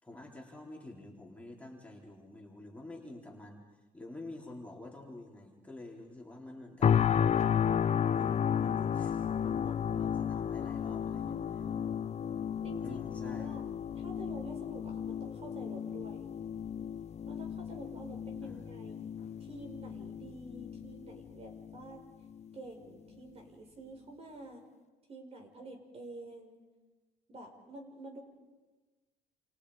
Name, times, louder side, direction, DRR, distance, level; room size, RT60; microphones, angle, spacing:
voice 1, 0.0-3.6 3.9-6.9 8.1-11.4 12.8-13.6 18.4-18.7, left 2 dB, 10° left, -1 dB, 4.2 m, -48 dB
sound 1, 6.8-21.8 22.3-22.5, left 8 dB, 40° left, 0.8 m, -33 dB
voice 2, 11.0-11.8 12.6-13.7 13.9-16.3 17.3-22.0 22.5-24.6 25.1-26.6 27.3-28.2, right 2 dB, 35° right, 3 dB, 5.3 m, -49 dB
29.0 x 28.5 x 5.1 m, 1.2 s
cardioid pair, 110°, 17 cm